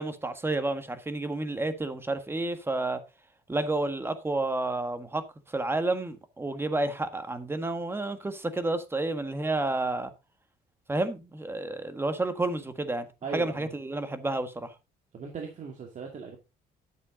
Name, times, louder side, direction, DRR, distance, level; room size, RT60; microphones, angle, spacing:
voice 1, 0.0-3.0 3.5-5.2 5.5-10.1 10.9-13.1 13.3-14.7, right 2 dB, 15° right, 1.6 m, -30 dB
voice 2, 13.2-13.7 15.1-16.4, right 5 dB, 45° right, 2.3 m, -38 dB
10.5 x 8.2 x 3.8 m
cardioid pair, 110°, 17 cm